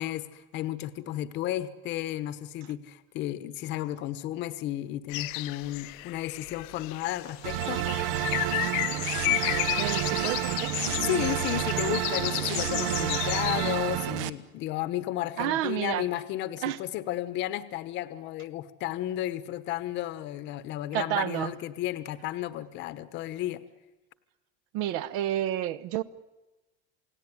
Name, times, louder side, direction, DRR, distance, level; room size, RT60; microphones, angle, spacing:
voice 1, 0.0-7.8 10.9-23.6, left 14 dB, 40° left, 14 dB, 1.2 m, -33 dB
sound 1, 5.1-13.8, left 21 dB, 60° left, 0.9 m, -32 dB
sound 2, 7.4-14.3, right 13 dB, 65° right, 1.3 m, -30 dB
voice 2, 9.8-10.7 15.4-16.1 16.6-16.8 20.9-21.5 24.7-26.0, right 12 dB, 50° right, 15 dB, 1.0 m, -30 dB
28.5 x 18.5 x 9.7 m, 1.1 s
cardioid pair, 170°, 30 cm